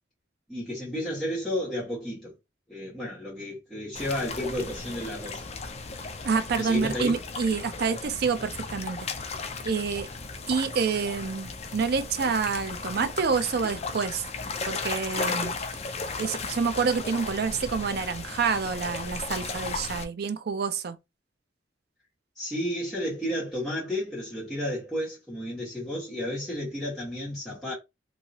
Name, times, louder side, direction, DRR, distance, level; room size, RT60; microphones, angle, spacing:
voice 1, 0.5-2.3 2.7-5.4 6.5-7.2 22.4-27.7, left 1 dB, ahead, 1.4 m, -32 dB
sound 1, 4.0-20.0, left 4 dB, 35° left, 0.5 m, -35 dB
voice 2, 6.2-9.1 9.6-10.1 10.5-14.2 14.6-15.6 16.2-21.0, right 5 dB, 60° right, 0.4 m, -28 dB
3.0 x 2.7 x 2.8 m
head